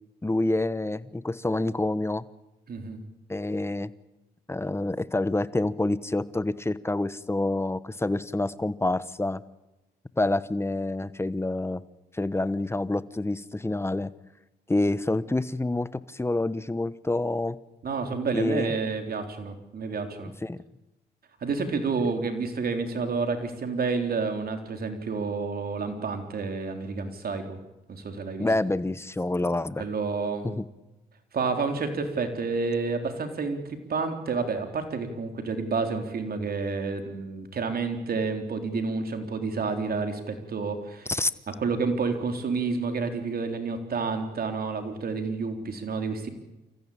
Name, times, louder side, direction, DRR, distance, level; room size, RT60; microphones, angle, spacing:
voice 1, 0.2-2.2 3.3-3.9 4.5-9.4 10.2-11.8 12.1-14.1 14.7-17.6 18.3-18.7 20.2-20.6 28.4-29.8 30.4-30.6 41.1-41.3, left 2 dB, 15° left, 16 dB, 1.2 m, -27 dB
voice 2, 2.7-3.0 17.8-20.3 21.4-27.6 27.9-28.5 29.8-30.5 31.3-41.1 41.6-46.3, right 4 dB, 60° right, 6 dB, 3.9 m, -29 dB
28.0 x 15.0 x 8.7 m, 1.0 s
supercardioid pair, 60°, 18 cm